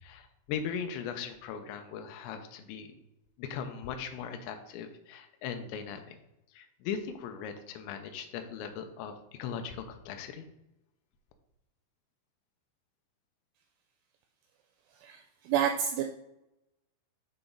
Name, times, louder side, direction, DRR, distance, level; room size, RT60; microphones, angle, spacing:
voice 1, 0.0-2.9 3.4-6.2 6.5-10.5, left 7 dB, 85° left, 7 dB, 2.6 m, -39 dB
voice 2, 14.9-16.0, right 9 dB, 85° right, 4 dB, 2.8 m, -29 dB
6.7 x 6.0 x 3.8 m, 0.88 s
omnidirectional pair, 5.9 m